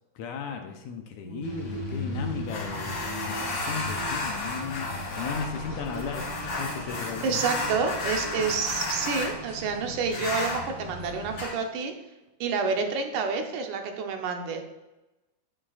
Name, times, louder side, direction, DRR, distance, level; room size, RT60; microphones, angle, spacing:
voice 1, 0.2-7.5 8.4-8.5, left 6 dB, 75° left, 4 dB, 1.9 m, -36 dB
sound 1, 1.2-11.2, right 1 dB, 50° right, 2.9 m, -42 dB
sound 2, 1.4-11.4, left 2 dB, 30° left, 2.6 m, -41 dB
sound 3, 2.5-9.3 10.1-10.6 11.3-11.5, left 3 dB, 60° left, 3.7 m, -33 dB
voice 2, 7.2-11.9 12.4-14.6, right 5 dB, 75° right, 4 dB, 2.3 m, -28 dB
9.8 x 8.7 x 2.4 m, 1.0 s
omnidirectional pair, 3.7 m